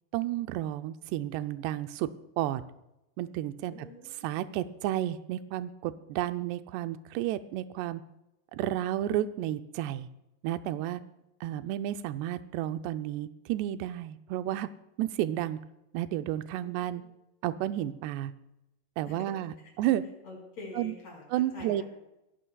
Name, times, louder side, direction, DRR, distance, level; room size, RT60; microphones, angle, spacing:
voice 1, 0.1-2.1 2.4-2.6 3.2-3.8 4.2-8.0 8.5-10.1 10.4-11.0 11.4-14.7 15.0-15.6 15.9-17.0 17.4-18.3 19.0-20.0 20.8-20.9 21.3-21.8, right 13 dB, 85° right, 10 dB, 2.7 m, -31 dB
voice 2, 3.5-4.4 16.5-17.1 19.0-19.4 19.6-19.7 20.2-21.8, left 2 dB, 40° left, -1 dB, 6.0 m, -47 dB
26.5 x 15.0 x 2.3 m, 0.91 s
omnidirectional pair, 4.8 m